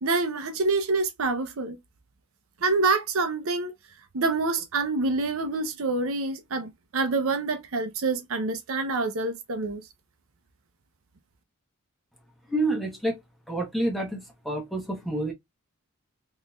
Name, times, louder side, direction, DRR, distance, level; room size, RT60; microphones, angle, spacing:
voice 1, 0.0-1.8 2.6-3.7 4.1-9.8, right 3 dB, 70° right, 0.7 m, -26 dB
voice 2, 12.5-13.2 13.5-15.3, right 1 dB, ahead, 1.2 m, -28 dB
3.8 x 3.0 x 2.3 m
head